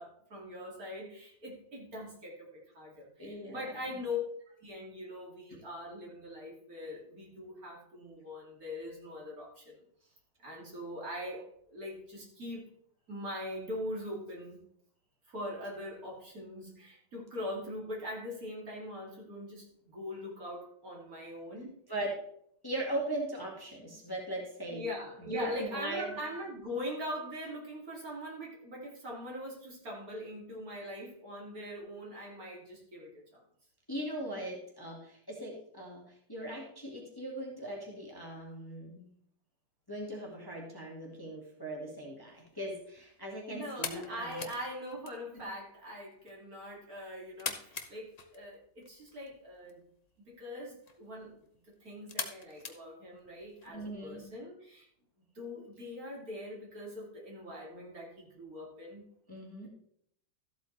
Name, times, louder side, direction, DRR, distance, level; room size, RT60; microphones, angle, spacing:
voice 1, 0.0-4.2 4.6-9.8 10.4-12.7 13.1-14.6 15.3-22.1 24.7-33.4 43.5-49.8 50.3-51.4 51.8-54.9 55.3-59.0 59.6-59.7, left 1 dB, 50° right, -3 dB, 3.1 m, -42 dB
voice 2, 3.2-4.0 5.5-5.6 21.9-22.2 22.6-24.8 25.2-26.1 33.9-39.1 39.9-44.5 45.3-45.4 53.7-54.3 59.3-59.7, right 1 dB, 10° left, -2 dB, 2.0 m, -39 dB
sound 1, 42.3-53.7, left 4 dB, 50° left, 0.4 m, -46 dB
14.0 x 8.1 x 3.3 m, 0.68 s
omnidirectional pair, 2.1 m